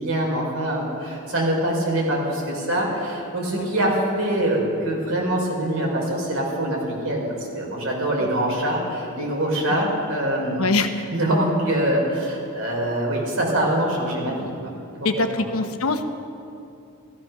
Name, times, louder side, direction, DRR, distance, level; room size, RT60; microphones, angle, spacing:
voice 1, 0.0-7.2 7.5-10.6 10.9-14.7 15.0-15.4, right 1 dB, 80° right, -2 dB, 3.9 m, -24 dB
voice 2, 10.6-10.9 15.0-16.0, left 3 dB, 90° left, 7 dB, 1.0 m, -23 dB
14.0 x 14.0 x 5.9 m, 2.6 s
head